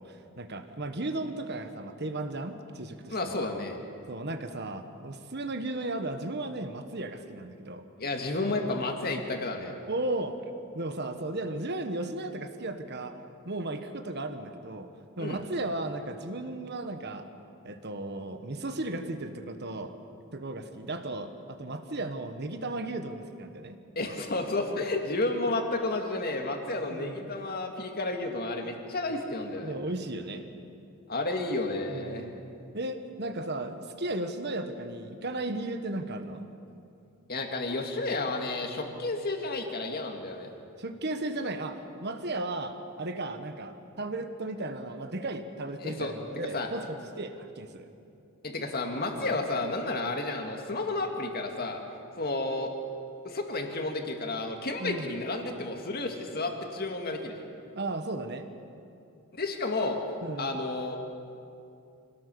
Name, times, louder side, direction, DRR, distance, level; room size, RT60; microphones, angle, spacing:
voice 1, 0.0-3.5 4.1-7.8 9.9-10.4 10.7-13.2 13.4-14.9 15.2-17.3 17.6-20.0 20.3-23.8 26.9-27.3 29.6-30.4 31.9-32.4 32.7-36.5 40.8-47.9 54.8-55.1 57.7-58.5 60.2-60.6, right 2 dB, 50° right, 8 dB, 1.4 m, -35 dB
voice 2, 3.1-3.8 8.0-9.7 15.2-15.4 24.0-29.7 31.1-32.3 37.3-40.5 45.8-46.1 46.5-46.7 48.4-51.8 52.2-52.7 53.2-57.4 59.3-60.0 60.4-61.0, left 2 dB, 45° left, 3 dB, 2.1 m, -31 dB
25.5 x 17.5 x 6.9 m, 2.6 s
head